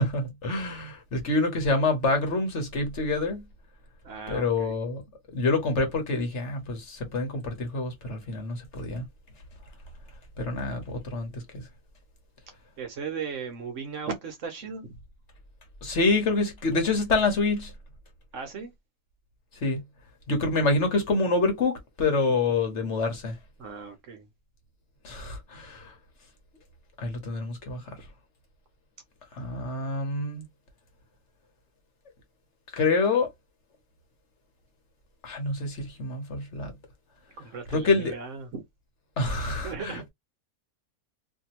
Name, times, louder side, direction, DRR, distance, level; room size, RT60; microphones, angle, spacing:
voice 1, 0.0-3.4 4.3-5.0 5.3-9.0 10.4-11.6 15.8-17.7 19.6-19.8 20.3-23.4 25.0-25.9 27.0-27.8 29.3-30.4 32.8-33.3 35.2-36.7 37.7-38.2 39.2-40.1, left 3 dB, 55° left, 1.2 m, -27 dB
voice 2, 4.0-4.7 12.8-14.9 18.3-18.7 23.6-24.3 37.4-38.6 39.5-40.0, right 5 dB, 60° right, 1.1 m, -37 dB
2.7 x 2.7 x 2.9 m
omnidirectional pair, 1.5 m